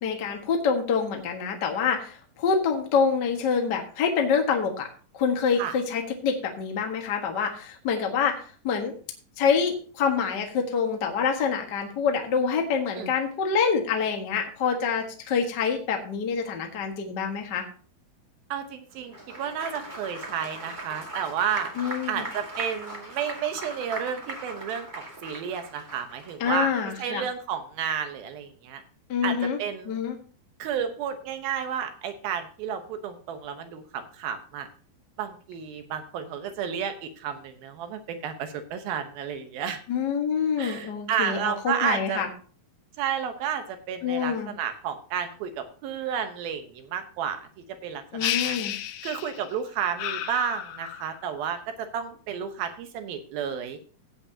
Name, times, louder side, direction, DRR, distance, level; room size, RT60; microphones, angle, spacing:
voice 1, 0.0-4.9 5.1-8.9 9.4-17.6 21.8-22.3 26.4-27.2 29.1-29.6 29.8-30.1 39.9-42.3 44.0-44.5 48.1-48.7, left 6 dB, 50° left, 2 dB, 1.2 m, -26 dB
voice 2, 18.5-21.7 22.1-26.7 27.0-28.8 29.2-30.0 30.6-34.7 35.2-39.8 40.6-42.2 43.0-47.5 47.8-48.6 49.0-53.8, right 8 dB, 75° right, 7 dB, 2.8 m, -31 dB
Applause, 19.0-26.8, right 1 dB, 55° right, 0.5 m, -39 dB
sound 1, 48.2-49.5 50.0-51.2, left 11 dB, 80° left, 2.2 m, -32 dB
16.0 x 8.8 x 2.8 m, 0.41 s
omnidirectional pair, 4.5 m